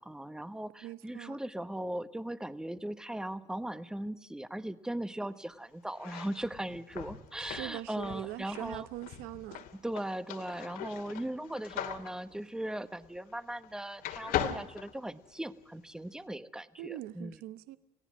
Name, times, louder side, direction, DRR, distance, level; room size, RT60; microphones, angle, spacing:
voice 1, 0.0-8.9 9.8-17.4, right 1 dB, 5° right, 1.1 m, -38 dB
voice 2, 0.8-1.4 7.4-9.7 16.8-17.8, right 15 dB, 85° right, 0.9 m, -42 dB
sound 1, 5.9-13.7 14.0-15.6, left 11 dB, 75° left, 2.6 m, -40 dB
29.0 x 18.0 x 6.3 m
cardioid pair, 140°, 15 cm